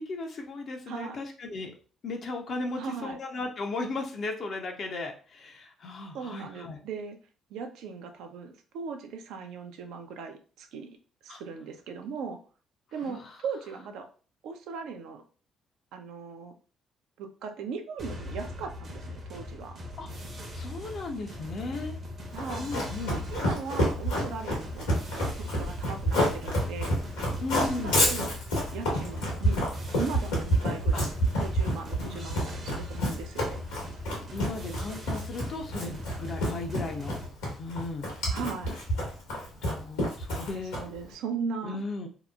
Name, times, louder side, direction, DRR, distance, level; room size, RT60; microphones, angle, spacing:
voice 1, 0.0-1.7 2.0-6.8 11.3-11.4 13.0-13.3 20.0-20.1 20.5-22.0 22.6-23.2 27.4-28.0 30.9-31.0 32.0-32.4 34.3-37.2 37.6-38.1 39.6-40.8 41.6-42.1, left 3 dB, 55° left, 3 dB, 0.5 m, -36 dB
voice 2, 0.9-1.2 2.8-3.2 6.1-7.2 7.5-11.0 11.2-12.4 12.9-14.1 14.4-15.2 15.9-16.5 17.2-19.8 22.3-22.7 23.1-24.9 25.1-27.0 27.8-28.4 28.7-29.6 30.0-31.1 31.4-33.6 38.3-38.8 40.8-41.8, right 5 dB, 70° right, 6 dB, 0.4 m, -38 dB
sound 1, 18.0-37.3, left 2 dB, 45° right, 0.7 m, -40 dB
Run, 22.4-41.0, equal, 80° left, 1.0 m, -28 dB
2.8 x 2.0 x 2.3 m, 0.39 s
hypercardioid pair, 50°, 0 cm